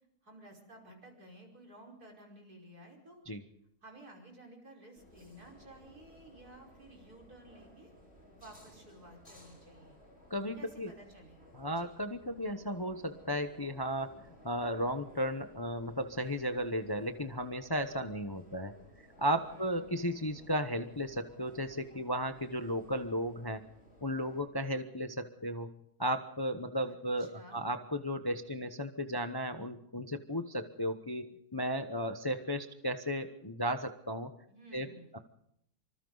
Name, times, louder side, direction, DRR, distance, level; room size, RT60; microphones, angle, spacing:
voice 1, 0.2-3.2 3.8-7.9 8.3-10.0 10.6-11.5 11.7-11.9 19.4-20.0 26.9-27.6 34.5-35.2, right 1 dB, 70° right, 0 dB, 5.7 m, -54 dB
sound 1, 4.9-24.4, left 1 dB, 40° left, 6.0 m, -58 dB
voice 2, 10.3-10.9 11.5-18.7 19.2-23.6 24.0-25.7 26.0-34.3 34.7-34.9 35.1-35.2, equal, 20° left, 7 dB, 0.8 m, -35 dB
25.5 x 25.5 x 4.0 m, 0.73 s
omnidirectional pair, 1.7 m